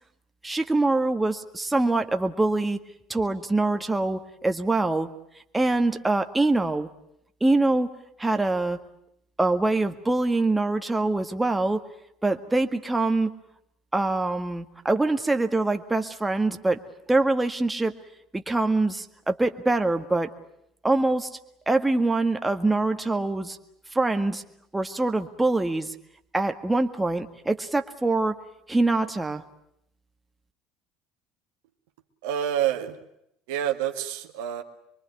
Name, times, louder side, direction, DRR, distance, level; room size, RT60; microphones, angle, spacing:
voice 1, 0.4-2.8 3.1-5.1 5.5-6.9 7.4-7.9 8.2-8.8 9.4-11.8 12.2-13.3 13.9-16.8 17.1-18.0 18.3-20.3 20.8-21.3 21.7-23.6 23.9-24.4 24.7-25.9 26.3-28.4 28.7-29.4, right 2 dB, 10° right, 6 dB, 1.7 m, -24 dB
voice 2, 32.2-33.0 33.5-34.6, right 10 dB, 75° right, 4 dB, 2.0 m, -27 dB
24.5 x 23.5 x 9.5 m, 0.77 s
hypercardioid pair, 70°, 0 cm